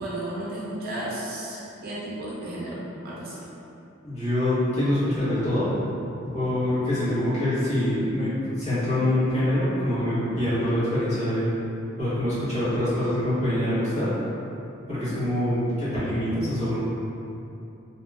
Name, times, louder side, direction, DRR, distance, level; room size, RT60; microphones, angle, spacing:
voice 1, 0.0-3.4, right 1 dB, 50° right, -6 dB, 0.5 m, -33 dB
voice 2, 4.0-5.7 6.2-8.3 8.6-11.5 12.0-14.1 14.9-16.8, left 1 dB, 35° left, -14 dB, 1.3 m, -25 dB
3.0 x 2.7 x 2.2 m, 2.8 s
head